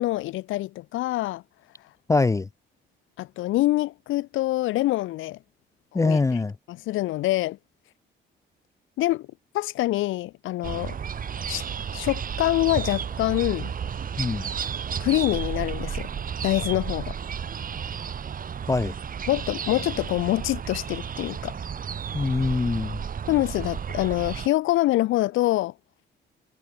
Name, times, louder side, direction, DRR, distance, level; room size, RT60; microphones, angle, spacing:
voice 1, 0.0-1.4 3.2-5.4 5.9-6.2 6.7-7.6 9.0-9.3 9.5-11.0 11.5-11.6 11.9-13.7 15.0-16.1 16.4-17.2 19.3-21.5 23.3-25.7, left 16 dB, 85° left, 0.7 m, -25 dB
voice 2, 2.1-2.5 5.9-6.5 14.2-14.5 18.7-18.9 22.1-23.0, left 3 dB, 15° left, 0.4 m, -23 dB
sound 1, 10.6-24.5, right 7 dB, 45° right, 1.5 m, -32 dB
cardioid pair, 90°, 20 cm